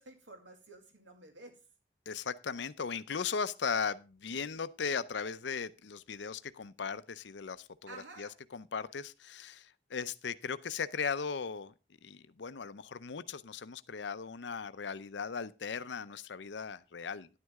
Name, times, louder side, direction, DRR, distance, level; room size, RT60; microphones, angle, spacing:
voice 1, 0.0-1.6 7.9-8.3, right 2 dB, 85° right, 2.3 m, -51 dB
voice 2, 2.1-11.7 12.0-17.3, left 6 dB, 80° left, 0.6 m, -38 dB
10.5 x 9.5 x 3.6 m
head